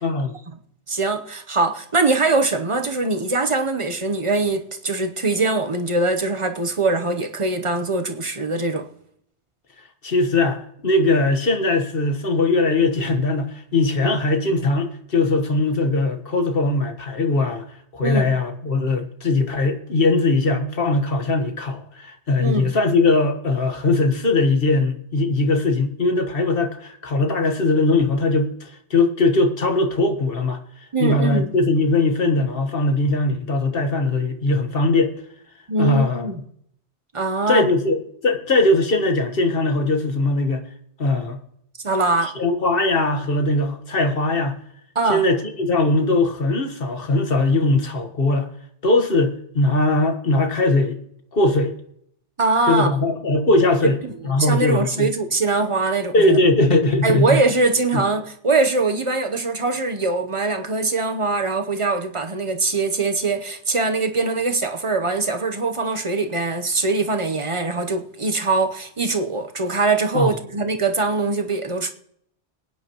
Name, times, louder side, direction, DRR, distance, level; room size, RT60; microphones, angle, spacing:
voice 1, 0.0-0.3 10.0-17.7 17.9-30.6 31.0-35.1 35.8-36.3 37.5-40.6 41.0-41.4 42.2-44.6 45.1-48.5 48.8-51.0 51.3-51.7 52.7-54.0 54.2-55.1 56.1-57.4 57.9-58.0 70.1-70.3, left 2 dB, 55° left, 1.6 m, -20 dB
voice 2, 0.9-8.8 18.0-18.3 22.4-22.7 30.9-31.5 35.7-36.3 37.1-37.6 41.8-42.3 44.9-45.2 52.4-52.9 54.0-54.1 54.4-56.4 57.0-71.9, right 3 dB, 30° right, 0.9 m, -22 dB
22.0 x 9.4 x 3.0 m
omnidirectional pair, 1.1 m